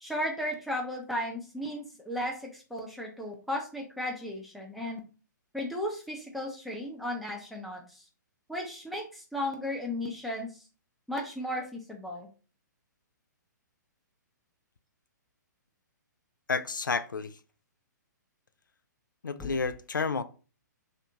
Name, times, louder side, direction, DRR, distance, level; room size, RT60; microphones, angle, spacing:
voice 1, 0.0-5.0 5.5-8.0 8.5-10.5 11.1-12.3 19.4-19.5, left 1 dB, ahead, -1 dB, 0.7 m, -35 dB
voice 2, 16.5-17.4 19.2-20.2, left 4 dB, 80° left, 12 dB, 0.4 m, -30 dB
3.3 x 2.7 x 2.8 m, 0.36 s
figure-of-eight pair, 120°, 10 cm